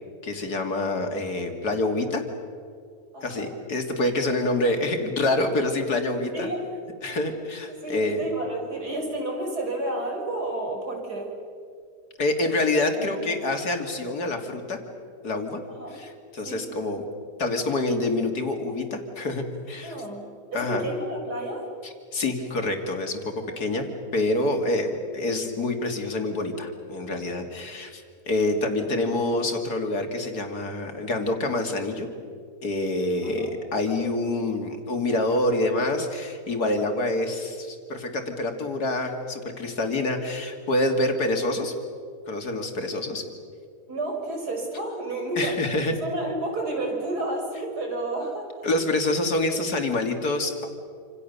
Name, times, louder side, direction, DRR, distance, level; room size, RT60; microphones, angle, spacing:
voice 1, 0.2-2.2 3.2-6.5 7.0-8.2 12.2-14.8 15.2-15.6 15.9-17.0 17.4-20.0 20.5-20.9 21.8-23.8 24.1-32.1 32.6-41.7 42.3-43.2 45.4-45.9 48.6-50.7, left 2 dB, 70° left, 5 dB, 3.1 m, -26 dB
voice 2, 3.1-3.5 4.5-4.6 6.3-6.7 7.1-7.2 7.7-11.3 12.9-13.4 15.6-16.0 16.4-16.6 19.8-21.7 23.5-23.9 33.2-33.5 43.9-45.6 46.0-48.6, right 2 dB, 65° right, 2 dB, 5.6 m, -31 dB
28.0 x 27.0 x 6.9 m, 2.3 s
omnidirectional pair, 1.8 m